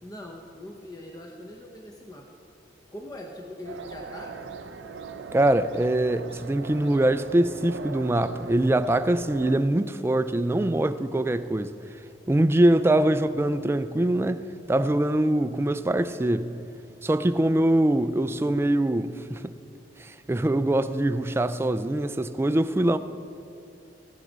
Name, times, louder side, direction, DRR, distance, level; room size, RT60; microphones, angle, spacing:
voice 1, 0.0-2.4 2.9-4.6, left 1 dB, 20° left, 0.7 m, -42 dB
sound 1, 3.7-9.6, right 4 dB, 80° right, 0.5 m, -40 dB
voice 2, 5.3-11.8 12.3-16.5 17.0-19.5 20.0-23.0, right 1 dB, 15° right, 0.3 m, -23 dB
16.0 x 9.3 x 4.0 m
head